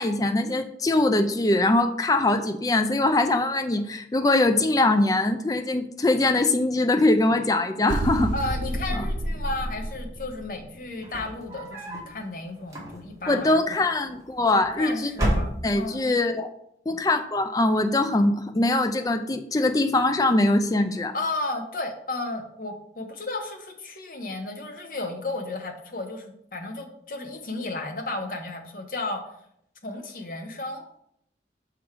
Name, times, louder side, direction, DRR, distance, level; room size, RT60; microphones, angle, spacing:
voice 1, 0.0-8.3 8.9-9.0 13.3-15.1 15.6-16.5 16.9-21.1, left 2 dB, 20° left, 7 dB, 0.4 m, -22 dB
sound 1, 7.9-10.6, right 1 dB, 50° right, 0.5 m, -29 dB
voice 2, 8.3-13.9 14.5-16.1 21.1-29.2 29.8-30.8, left 2 dB, 50° left, 4 dB, 0.9 m, -33 dB
sound 2, 10.9-12.1 12.6-13.3 14.3-14.8 15.1-16.0, equal, 20° right, 1.5 m, -29 dB
6.0 x 3.8 x 4.7 m, 0.73 s
head